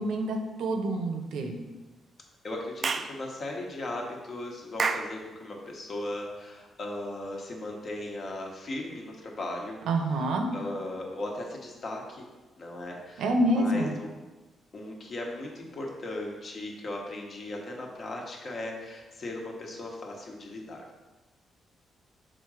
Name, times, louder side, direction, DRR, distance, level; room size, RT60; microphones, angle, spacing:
voice 1, 0.0-1.5 9.9-10.5 13.2-13.9, right 1 dB, 90° right, 4 dB, 0.8 m, -27 dB
voice 2, 2.4-9.8 10.1-12.3 12.6-14.1 14.7-20.8, left 1 dB, 40° left, 0 dB, 1.2 m, -37 dB
Clapping / Chirp tweet, 2.8-3.1 4.8-5.1, right 4 dB, 35° right, 0.4 m, -28 dB
6.8 x 3.8 x 4.8 m, 1.2 s
cardioid pair, 145°, 0 cm